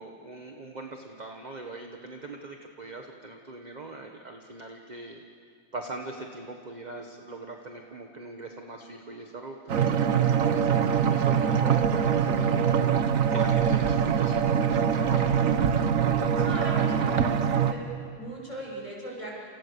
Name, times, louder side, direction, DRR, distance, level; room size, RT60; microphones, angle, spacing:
voice 1, 0.0-5.2 5.7-13.0 13.3-16.4 16.8-17.2, right 2 dB, 25° right, 3 dB, 1.3 m, -41 dB
sound 1, 9.7-17.7, right 7 dB, 50° right, 1.2 m, -23 dB
voice 2, 16.4-17.9 18.1-19.4, right 1 dB, 15° left, -3 dB, 7.5 m, -38 dB
30.0 x 29.0 x 6.9 m, 2.2 s
omnidirectional pair, 2.3 m